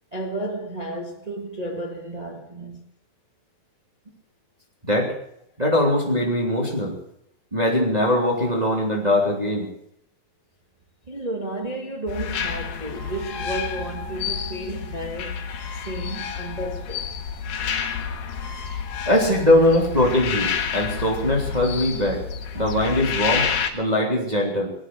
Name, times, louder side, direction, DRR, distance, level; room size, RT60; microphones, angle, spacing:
voice 1, 0.1-2.8 11.1-15.5 15.8-17.1, right 1 dB, 35° right, 0.6 m, -32 dB
voice 2, 4.8-5.1 5.6-7.0 7.5-9.7 19.1-22.2 22.5-23.5 23.7-24.7, left 1 dB, 10° right, 2.7 m, -21 dB
sound 1, 12.1-23.7, left 7 dB, 75° left, 3.3 m, -29 dB
20.0 x 8.9 x 7.7 m
omnidirectional pair, 4.1 m